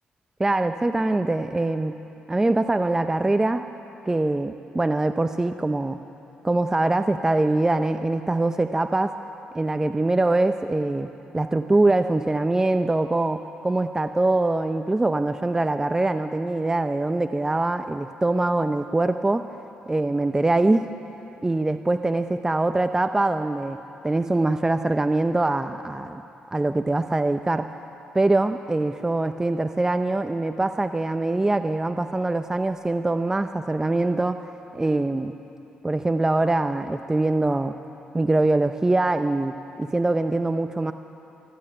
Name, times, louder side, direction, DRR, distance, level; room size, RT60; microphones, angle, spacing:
voice 1, 0.4-2.0 2.3-3.6 4.1-6.0 6.4-9.2 9.5-11.1 11.3-19.4 19.9-20.9 21.4-23.8 24.0-26.2 26.5-27.7 28.1-34.4 34.7-35.3 35.8-37.7 38.1-40.9, right 2 dB, 15° right, 8 dB, 0.6 m, -23 dB
23.5 x 12.5 x 8.8 m, 2.9 s
cardioid pair, 75°, 3 cm